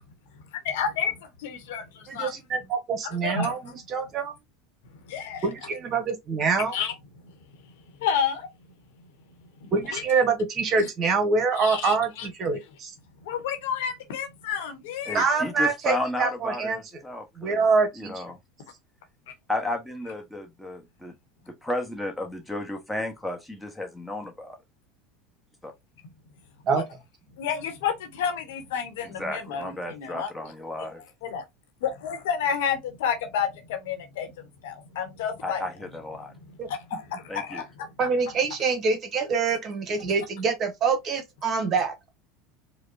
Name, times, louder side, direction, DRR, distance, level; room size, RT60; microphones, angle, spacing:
voice 1, 0.6-2.3 3.2-3.5 5.0-5.5 6.7-6.9 7.2-7.3 8.0-8.5 9.6-10.0 10.8-10.9 11.6-12.3 13.2-15.3 26.7-26.8 27.4-30.3 31.2-31.4 31.8-34.3 34.6-35.6 36.7-37.9, left 7 dB, 65° left, 1.0 m, -30 dB
voice 2, 2.1-4.3 5.4-6.8 9.7-12.9 15.1-16.8 17.4-18.2 26.7-26.8 36.6-36.7 38.0-42.1, right 4 dB, 40° right, 1.0 m, -25 dB
voice 3, 15.0-17.6 18.0-18.4 19.5-21.1 21.4-24.6 25.6-25.7 29.0-31.0 35.4-36.3 37.3-37.6, left 1 dB, 5° left, 1.1 m, -33 dB
4.8 x 2.2 x 2.7 m
figure-of-eight pair, 75°, 0 cm